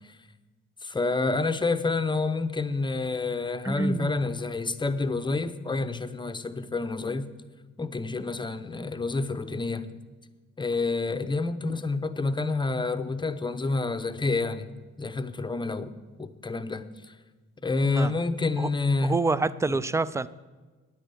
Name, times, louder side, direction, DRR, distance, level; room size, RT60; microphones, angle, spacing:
voice 1, 0.8-7.3 7.8-9.9 10.6-14.7 15.0-16.9 17.6-19.2 19.7-19.8, left 3 dB, 15° left, 0.7 m, -28 dB
voice 2, 3.6-4.1 17.8-18.1 18.6-18.7 19.0-20.3, right 3 dB, 10° right, 0.4 m, -27 dB
10.0 x 9.2 x 6.9 m
cardioid pair, 90°, 30 cm